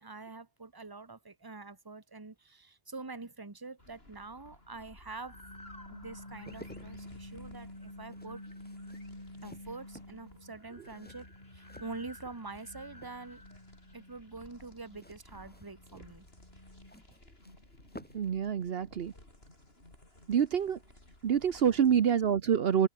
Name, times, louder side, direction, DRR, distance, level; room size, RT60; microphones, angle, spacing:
voice 1, 0.0-5.4 5.9-8.4 9.4-11.3 11.5-13.6 13.9-16.3, right 3 dB, 20° right, 1.4 m, -45 dB
sound 1, 3.8-22.0, left 1 dB, 65° left, 6.7 m, -56 dB
sound 2, 5.3-10.6 10.9-17.1, left 1 dB, 35° left, 5.5 m, -50 dB
sound 3, 6.2-12.6 12.9-13.6 14.9-18.4 18.6-18.8, equal, 10° left, 5.6 m, -55 dB
voice 2, 18.1-19.1 20.3-20.8 21.2-22.9, right 8 dB, 65° right, 1.0 m, -27 dB
omnidirectional pair, 1.1 m